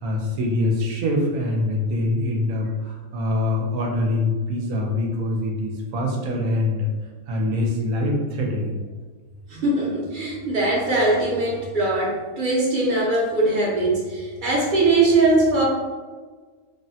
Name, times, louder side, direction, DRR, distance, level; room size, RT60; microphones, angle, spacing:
voice 1, 0.0-6.9 7.3-8.8, left 2 dB, 70° right, -1 dB, 1.0 m, -24 dB
voice 2, 9.5-15.6, right 2 dB, 45° right, -4 dB, 0.7 m, -21 dB
3.4 x 2.1 x 2.7 m, 1.4 s
omnidirectional pair, 1.5 m